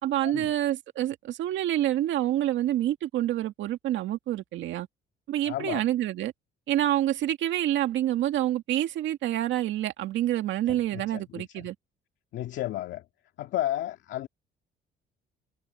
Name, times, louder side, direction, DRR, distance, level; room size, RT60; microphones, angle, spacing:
voice 1, 0.0-4.9 5.3-6.3 6.7-11.8, right 13 dB, 80° right, 2.1 m, -27 dB
voice 2, 5.5-5.8 10.7-11.7 12.3-13.0 13.4-14.3, left 13 dB, 75° left, 2.3 m, -33 dB
cardioid pair, 150°, 19 cm